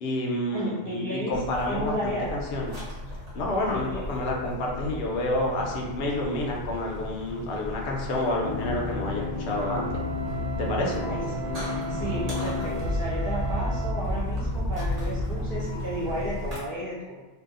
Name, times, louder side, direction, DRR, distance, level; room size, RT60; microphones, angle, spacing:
voice 1, 0.0-2.8 3.3-10.0 10.6-11.0, left 1 dB, 60° left, -2 dB, 0.7 m, -29 dB
voice 2, 0.5-1.4 1.7-2.4 3.7-4.0 11.1-11.6 11.9-17.2, equal, 20° left, -11 dB, 0.7 m, -33 dB
sound 1, 1.3-16.6, left 2 dB, 30° right, 1.0 m, -36 dB
sound 2, 8.4-15.6, left 2 dB, 50° right, 0.7 m, -31 dB
Wind instrument woodwind instrument, 9.5-14.1, right 7 dB, 80° right, 1.0 m, -39 dB
2.6 x 2.2 x 2.4 m, 1.2 s
omnidirectional pair, 1.5 m